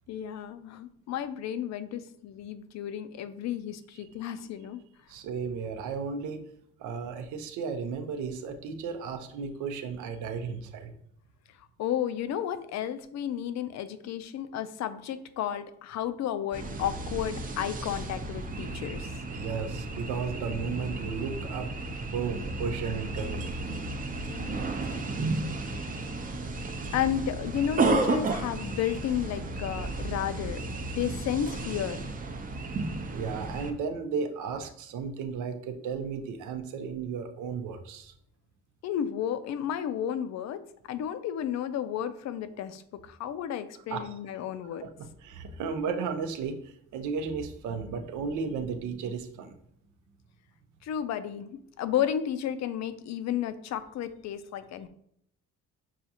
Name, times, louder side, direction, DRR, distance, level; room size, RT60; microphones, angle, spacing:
voice 1, 0.1-4.8 11.8-19.1 24.2-25.3 26.9-30.6 31.0-32.0 38.8-40.6 40.9-44.8 50.8-54.9, left 10 dB, 65° left, 11 dB, 0.4 m, -32 dB
voice 2, 5.1-6.4 6.8-10.9 19.3-21.7 22.1-23.5 33.1-38.1 43.9-44.0 44.8-49.6, right 5 dB, 85° right, 7 dB, 0.6 m, -34 dB
sound 1, 16.5-33.7, right 3 dB, 30° right, 0.5 m, -33 dB
5.6 x 2.4 x 2.7 m, 0.72 s
cardioid pair, 90°, 30 cm